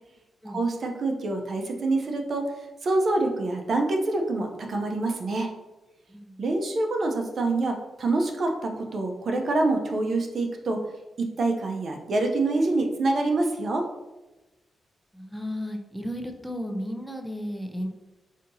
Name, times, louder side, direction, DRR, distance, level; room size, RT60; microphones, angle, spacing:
voice 1, 0.5-5.5 6.4-10.8 11.2-13.9, right 2 dB, 60° right, 3 dB, 0.6 m, -26 dB
voice 2, 6.1-6.4 15.1-17.9, equal, ahead, 3 dB, 0.6 m, -34 dB
5.0 x 2.7 x 2.7 m, 1.1 s
cardioid pair, 55°, 0 cm